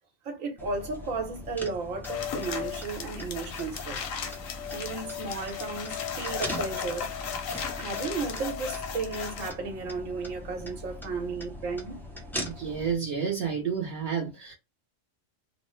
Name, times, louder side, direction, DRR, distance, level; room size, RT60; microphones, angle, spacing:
voice 1, 0.2-4.0 4.7-7.1 7.8-11.9, right 4 dB, 90° right, 1.3 m, -34 dB
sound 1, 0.6-12.9, equal, 5° left, 0.3 m, -41 dB
sound 2, 2.0-9.5, left 7 dB, 90° left, 1.0 m, -36 dB
voice 2, 12.4-14.5, right 6 dB, 55° right, 0.9 m, -30 dB
3.0 x 2.1 x 3.0 m
omnidirectional pair, 1.3 m